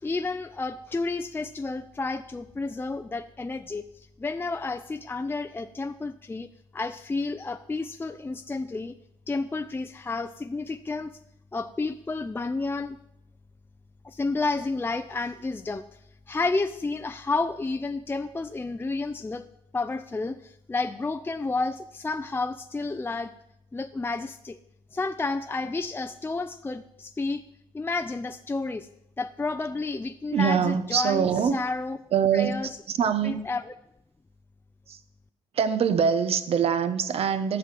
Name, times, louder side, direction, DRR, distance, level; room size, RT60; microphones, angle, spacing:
voice 1, 0.0-6.5 6.7-9.0 9.3-11.1 11.5-13.0 14.0-15.8 16.3-19.5 19.7-23.3 23.7-24.6 24.9-27.4 27.7-28.9 29.2-32.0 32.3-32.7 33.2-33.6, left 3 dB, 20° left, 8 dB, 0.5 m, -31 dB
voice 2, 30.3-31.6 32.1-33.5 34.9-35.0 35.5-37.6, right 7 dB, 60° right, 11 dB, 1.0 m, -24 dB
10.0 x 6.2 x 7.8 m, 0.81 s
supercardioid pair, 60°, 12 cm